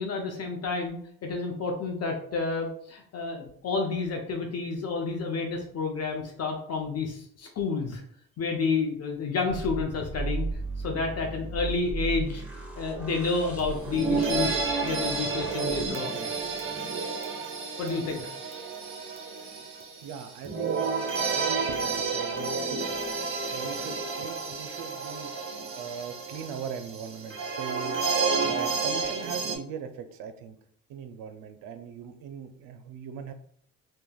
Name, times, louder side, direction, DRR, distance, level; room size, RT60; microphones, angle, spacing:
voice 1, 0.0-8.0 8.4-10.5 10.8-12.4 12.8-16.3 17.8-18.2, left 4 dB, 45° left, 2 dB, 0.5 m, -30 dB
sound 1, 9.5-15.9, right 3 dB, 5° right, 0.8 m, -36 dB
sound 2, 13.3-13.4 13.6-29.6, right 4 dB, 35° right, 0.7 m, -31 dB
voice 2, 20.0-28.0 28.4-30.6 30.9-33.3, right 7 dB, 80° right, 9 dB, 0.5 m, -40 dB
3.2 x 2.2 x 2.2 m, 0.63 s
cardioid pair, 75°, 35 cm